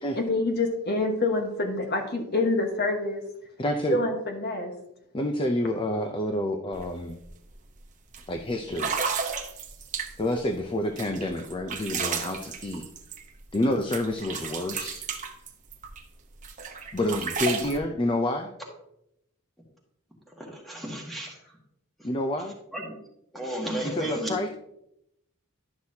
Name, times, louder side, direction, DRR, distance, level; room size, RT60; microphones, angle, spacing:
voice 1, 0.2-3.2 3.9-4.7, left 2 dB, 50° left, 3 dB, 1.3 m, -26 dB
voice 2, 3.6-4.0 5.1-7.2 8.3-8.9 10.2-12.9 13.5-15.0 16.9-18.5 22.0-22.5 23.9-24.5, left 1 dB, 25° left, 5 dB, 0.5 m, -28 dB
sound 1, 6.7-6.9 7.2-7.5 8.1-8.2 8.7-10.4 11.0-13.7 13.9-16.0 16.4-17.8, right 6 dB, 35° right, 0.8 m, -33 dB
voice 3, 20.4-21.6 22.7-23.0 23.3-24.5, right 1 dB, ahead, -2 dB, 1.8 m, -34 dB
11.5 x 6.1 x 2.8 m, 0.79 s
head